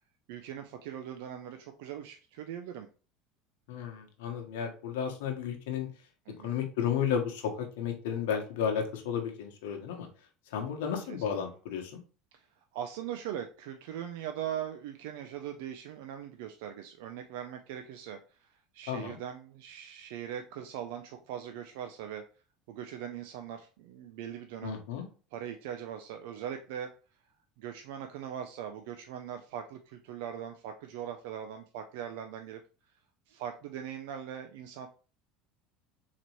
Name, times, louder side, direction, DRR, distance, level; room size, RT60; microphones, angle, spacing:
voice 1, 0.3-2.9 6.3-6.6 11.1-11.2 12.3-12.5 12.7-22.2 22.7-24.8 25.3-26.9 27.6-32.6 33.3-34.9, right 9 dB, 75° right, 5 dB, 0.4 m, -40 dB
voice 2, 3.7-5.9 6.4-10.1 10.5-12.0 18.9-19.2 24.6-25.1, left 8 dB, 85° left, 4 dB, 1.0 m, -33 dB
4.1 x 3.0 x 3.0 m, 0.36 s
supercardioid pair, 110°, 0 cm